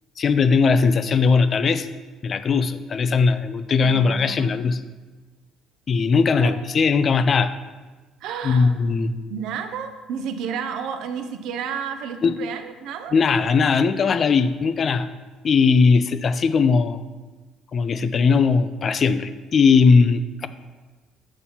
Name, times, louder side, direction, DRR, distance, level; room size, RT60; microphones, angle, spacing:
voice 1, 0.2-1.9 2.2-4.8 5.9-7.5 8.4-9.1 12.2-12.3 13.1-15.1 15.4-17.0 17.7-20.5, left 5 dB, 30° left, 12 dB, 0.3 m, -19 dB
voice 2, 3.7-4.6 6.4-6.5 8.2-8.8 9.3-13.1, right 7 dB, 60° right, 8 dB, 0.6 m, -31 dB
7.0 x 4.2 x 5.6 m, 1.2 s
cardioid pair, 175°, 0 cm